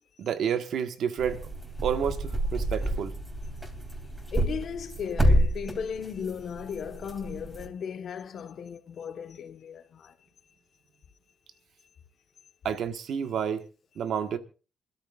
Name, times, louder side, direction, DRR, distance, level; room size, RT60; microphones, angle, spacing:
voice 1, 0.2-1.4 1.8-3.1 12.6-13.6 14.0-14.4, right 8 dB, 75° right, 1.5 m, -29 dB
sound 1, 1.2-7.7, equal, 15° right, 2.7 m, -28 dB
voice 2, 4.3-10.2, left 7 dB, 65° left, 1.3 m, -36 dB
27.0 x 13.0 x 2.5 m
cardioid pair, 90°, 0 cm